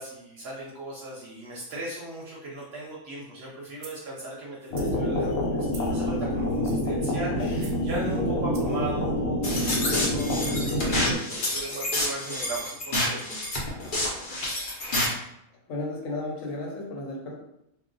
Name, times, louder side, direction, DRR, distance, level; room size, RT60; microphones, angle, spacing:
voice 1, 0.0-13.3, right 2 dB, 60° right, -4 dB, 0.7 m, -38 dB
sound 1, 3.8-4.0 4.6-4.9 5.7-6.0 6.5-6.9 7.5-7.8 8.5-8.8, right 4 dB, 85° right, 0.4 m, -47 dB
sound 2, 4.7-11.1, left 1 dB, 85° left, 1.1 m, -27 dB
sound 3, 9.4-15.1, left 1 dB, 45° left, 0.7 m, -29 dB
voice 2, 15.7-17.4, left 2 dB, 65° left, -1 dB, 1.1 m, -33 dB
2.3 x 2.2 x 3.8 m, 0.81 s
omnidirectional pair, 1.5 m